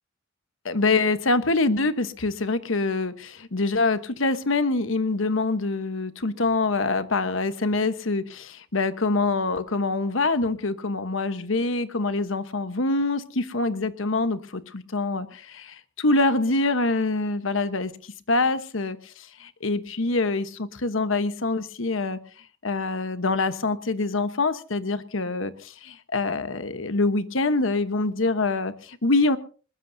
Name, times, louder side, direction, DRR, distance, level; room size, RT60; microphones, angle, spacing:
voice 1, 0.6-17.9 18.3-22.2 22.6-29.4, left 3 dB, 70° left, 1.2 m, -25 dB
21.0 x 20.5 x 2.7 m
head